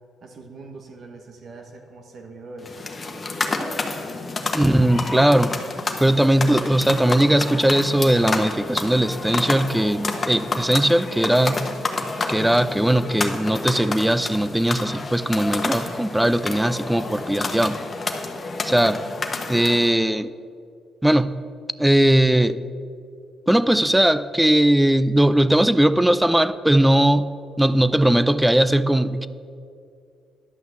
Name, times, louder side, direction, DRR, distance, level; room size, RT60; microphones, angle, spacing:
voice 1, 0.2-2.8 19.3-19.8, right 3 dB, 60° right, 3 dB, 1.1 m, -42 dB
sound 1, 2.6-19.9, left 3 dB, 30° left, 1.2 m, -29 dB
voice 2, 4.5-5.6 6.0-11.7 12.3-17.8 18.6-19.0 19.5-20.3 21.0-21.4 21.8-22.6 23.5-27.3 27.6-29.3, right 1 dB, 5° right, 15 dB, 0.4 m, -19 dB
11.0 x 5.8 x 7.8 m, 2.3 s
cardioid pair, 90°, 0 cm